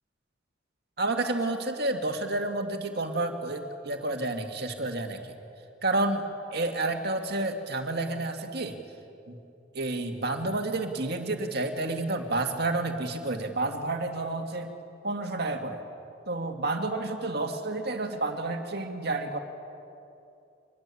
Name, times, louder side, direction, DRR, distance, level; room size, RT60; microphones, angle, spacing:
voice 1, 1.0-5.3 5.8-6.2 6.5-8.8 9.3-9.4 9.7-14.7 15.0-15.8 16.3-19.4, right 2 dB, 55° right, 4 dB, 2.2 m, -30 dB
24.5 x 21.0 x 8.5 m, 2.7 s
head